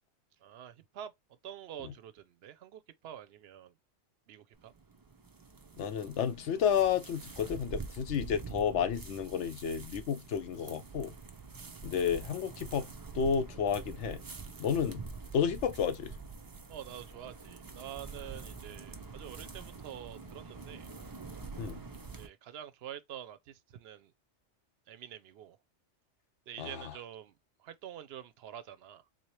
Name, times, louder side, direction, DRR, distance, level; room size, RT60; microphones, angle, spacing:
voice 1, 0.4-1.1 1.4-3.7 4.3-4.7 16.7-20.9 22.1-24.1 24.9-25.6 26.5-27.3 27.6-29.0, right 10 dB, 65° right, 0.8 m, -47 dB
sound 1, 4.5-22.3, right 4 dB, 35° right, 0.3 m, -46 dB
voice 2, 5.8-11.1 11.8-12.9 13.1-14.2 14.6-15.0 15.3-16.1 21.6-21.8 26.6-26.9, left 7 dB, 75° left, 0.9 m, -31 dB
3.9 x 2.8 x 3.1 m
omnidirectional pair, 1.2 m